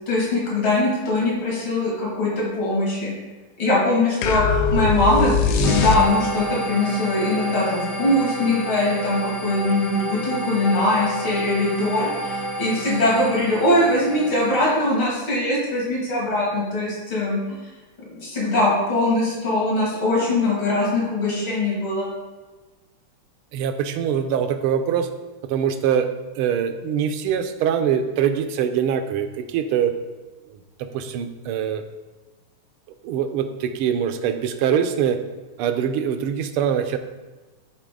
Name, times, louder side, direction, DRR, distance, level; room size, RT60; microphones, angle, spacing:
voice 1, 0.1-3.1 3.6-17.6 18.1-22.1, left 2 dB, 70° left, -5 dB, 3.2 m, -22 dB
sound 1, 4.2-6.5, left 4 dB, 85° left, 0.8 m, -21 dB
sound 2, 5.6-15.0, right 1 dB, 30° right, 0.5 m, -30 dB
voice 2, 23.5-25.1 25.5-26.1 26.4-29.9 30.8-31.8 33.0-35.2 35.6-37.0, right 8 dB, 90° right, 8 dB, 1.5 m, -23 dB
10.5 x 4.1 x 3.8 m, 1.2 s
omnidirectional pair, 2.4 m